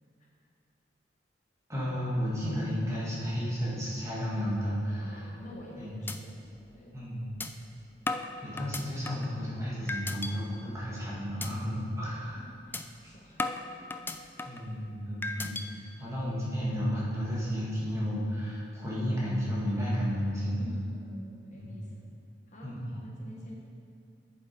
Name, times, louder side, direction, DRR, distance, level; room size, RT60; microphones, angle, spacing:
voice 1, 1.7-5.3 5.8-5.9 6.9-7.3 8.4-12.4 14.4-20.6 21.5-21.7 22.6-23.0, equal, 15° right, -7 dB, 2.2 m, -32 dB
voice 2, 5.0-6.3 6.7-7.1 12.7-14.1 14.4-14.7 20.5-22.0 22.5-22.7 23.0-23.6, left 1 dB, 40° left, -3 dB, 1.3 m, -48 dB
sound 1, 5.4-5.7 6.1-6.2 6.6-6.7 7.4-7.5 8.1-9.3 9.9-10.3 10.8-11.0 11.4-11.5 11.9-12.1 12.7-12.8 13.4-14.7 15.2-15.7, left 3 dB, 10° left, 0.3 m, -35 dB
8.8 x 7.2 x 4.6 m, 2.4 s
head